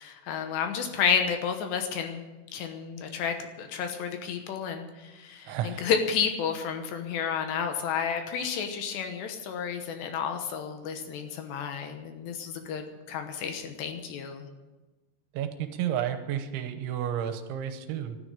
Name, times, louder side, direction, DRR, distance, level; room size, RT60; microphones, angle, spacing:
voice 1, 0.0-2.2 2.5-14.5, left 7 dB, 75° left, 6 dB, 3.0 m, -31 dB
voice 2, 5.5-5.8 15.3-18.2, right 10 dB, 80° right, 9 dB, 3.3 m, -31 dB
12.5 x 9.7 x 9.7 m, 1.1 s
omnidirectional pair, 5.5 m